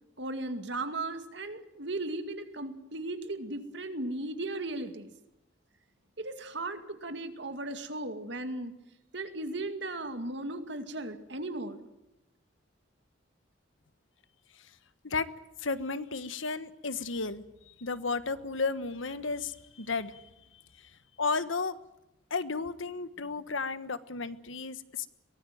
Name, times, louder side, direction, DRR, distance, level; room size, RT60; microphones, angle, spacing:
voice 1, 0.2-5.1 6.2-8.7 9.1-11.9, right 2 dB, 65° right, 8 dB, 2.3 m, -36 dB
voice 2, 15.6-17.4 17.8-20.2 21.2-21.8 22.3-25.1, left 4 dB, 80° left, 13 dB, 1.4 m, -33 dB
23.0 x 18.0 x 9.3 m, 0.90 s
head